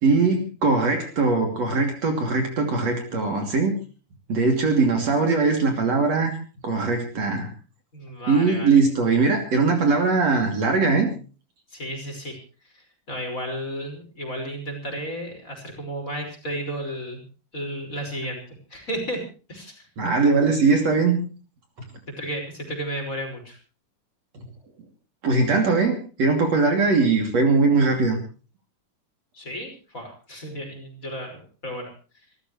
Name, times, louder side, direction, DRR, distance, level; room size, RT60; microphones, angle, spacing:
voice 1, 0.0-3.8 4.3-6.4 6.6-7.5 8.3-11.1 20.0-21.2 25.2-28.2, right 4 dB, 50° right, 3 dB, 3.8 m, -21 dB
voice 2, 7.9-8.8 11.7-19.2 19.5-19.9 22.1-23.6 29.3-32.3, equal, 25° left, 2 dB, 5.7 m, -33 dB
26.5 x 14.5 x 3.2 m, 0.36 s
omnidirectional pair, 3.8 m